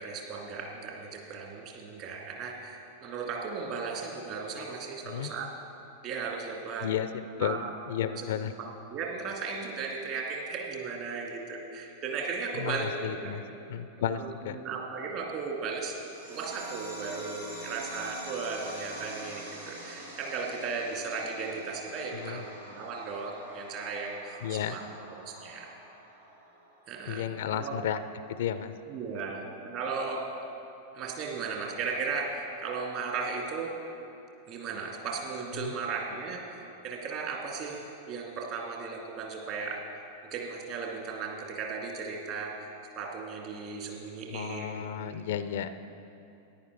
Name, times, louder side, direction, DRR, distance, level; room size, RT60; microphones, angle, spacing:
voice 1, 0.0-5.5 6.0-6.9 7.4-7.7 8.0-8.3 8.9-13.3 14.0-24.8 25.3-25.7 26.9-27.3 27.6-27.8 28.9-30.3 30.9-33.7 34.5-42.5 42.9-44.7 45.0-45.1, right 4 dB, 40° right, 0 dB, 2.0 m, -36 dB
voice 2, 7.4-8.5 12.6-13.4 13.7-14.6 22.1-22.4 24.4-24.8 27.1-28.0 28.3-28.7 35.5-35.7 44.3-45.7, left 9 dB, 55° left, 13 dB, 0.4 m, -33 dB
sound 1, 16.1-27.1, right 1 dB, 85° right, 2.0 m, -45 dB
14.0 x 10.5 x 4.7 m, 2.8 s
figure-of-eight pair, 90°, 0 cm